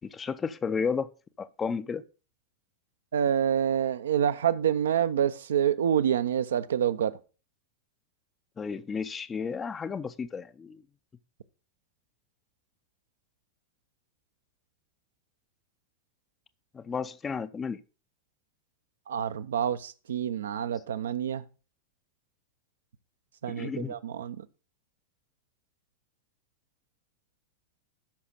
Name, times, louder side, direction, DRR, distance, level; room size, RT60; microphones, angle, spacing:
voice 1, 0.0-1.1 1.4-2.0 8.6-10.8 16.7-17.8 23.5-23.9, left 5 dB, 20° left, 0.5 m, -32 dB
voice 2, 3.1-7.1 19.1-21.4 23.4-24.4, right 9 dB, 65° right, 0.6 m, -27 dB
13.0 x 5.8 x 3.9 m
figure-of-eight pair, 90°, 0 cm